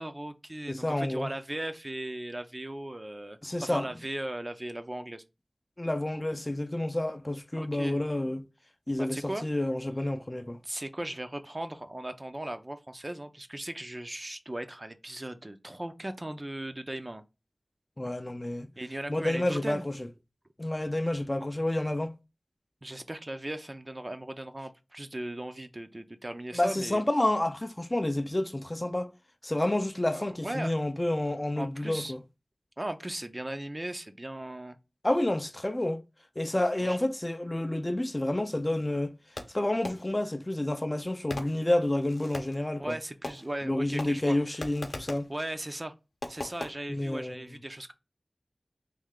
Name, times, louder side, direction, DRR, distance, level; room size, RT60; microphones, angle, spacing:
voice 1, 0.0-5.2 7.6-8.0 9.0-9.5 10.6-17.2 18.8-19.8 22.8-27.0 30.1-30.8 31.6-32.1 32.8-34.8 36.8-37.0 42.8-44.6 45.3-45.9 46.3-47.9, right 1 dB, 35° right, 0.5 m, -38 dB
voice 2, 0.7-1.3 3.4-3.9 5.8-8.5 8.9-10.6 18.0-18.7 19.1-20.1 20.6-22.1 26.5-29.1 29.4-32.2 35.0-36.0 36.4-39.1 39.5-43.0 43.6-45.3 46.9-47.5, left 1 dB, 30° left, 0.4 m, -29 dB
Fireworks, 39.4-40.3 41.3-42.7 43.2-43.7 44.0-45.4 46.2-46.7, left 2 dB, 70° left, 0.7 m, -40 dB
3.2 x 2.7 x 3.6 m
wide cardioid pair, 45°, 0 cm